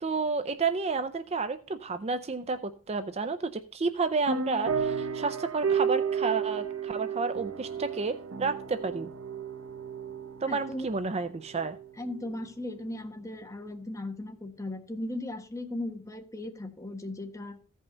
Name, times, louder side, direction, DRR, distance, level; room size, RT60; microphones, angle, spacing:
voice 1, 0.0-9.1 10.4-11.8, right 4 dB, 30° right, 10 dB, 0.5 m, -31 dB
sound 1, 4.3-12.4, right 6 dB, 80° right, 1.0 m, -33 dB
voice 2, 10.5-10.9 12.0-17.6, left 1 dB, 15° left, 4 dB, 1.3 m, -37 dB
15.0 x 5.5 x 3.9 m, 0.40 s
head